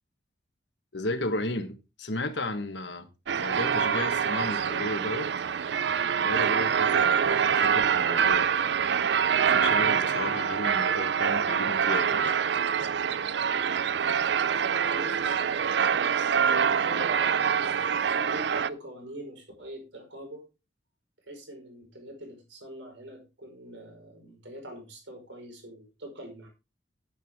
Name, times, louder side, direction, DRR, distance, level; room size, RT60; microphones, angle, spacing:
voice 1, 0.9-3.1 3.4-5.3 6.2-8.5 9.5-12.3, left 2 dB, 70° left, 1.4 m, -33 dB
sound 1, 3.3-18.7, right 7 dB, 65° right, 0.4 m, -25 dB
voice 2, 14.5-15.7 16.1-17.8 18.0-20.4 21.2-26.5, right 1 dB, 85° right, 5.2 m, -43 dB
10.5 x 9.3 x 3.6 m
head